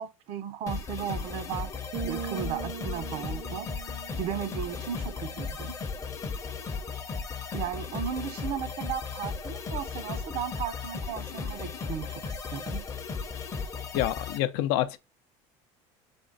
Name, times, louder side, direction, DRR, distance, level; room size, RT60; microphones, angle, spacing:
voice 1, 0.0-1.7 2.0-3.7 4.2-5.7 7.5-12.8, right 8 dB, 55° right, 0.6 m, -35 dB
sound 1, 0.7-14.4, left 5 dB, 25° left, 0.6 m, -36 dB
sound 2, 1.9-5.6, right 8 dB, 75° right, 1.4 m, -41 dB
voice 2, 13.9-15.0, left 13 dB, 85° left, 0.5 m, -27 dB
3.6 x 3.2 x 3.9 m
cardioid pair, 135°, 13 cm